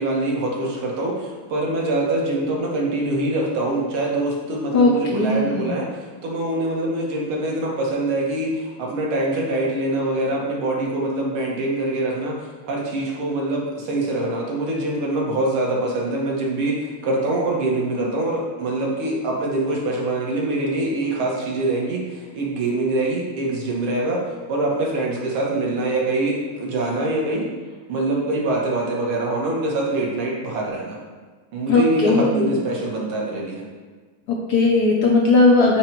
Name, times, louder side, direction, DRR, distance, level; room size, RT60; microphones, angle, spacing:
voice 1, 0.0-24.2 24.5-27.5 27.9-31.0 31.5-33.7, right 2 dB, 90° right, -2 dB, 2.1 m, -24 dB
voice 2, 4.7-5.7 31.7-32.5 34.3-35.8, left 3 dB, 70° left, -1 dB, 1.0 m, -18 dB
8.5 x 3.0 x 4.5 m, 1.4 s
omnidirectional pair, 2.3 m